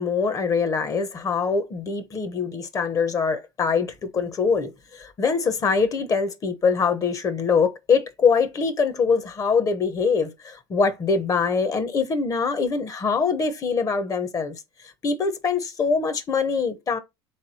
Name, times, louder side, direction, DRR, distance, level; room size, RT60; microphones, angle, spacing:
voice 1, 0.0-14.6 15.0-17.0, left 5 dB, 35° left, 0.9 m, -23 dB
3.6 x 3.3 x 4.2 m
supercardioid pair, 105°, 10 cm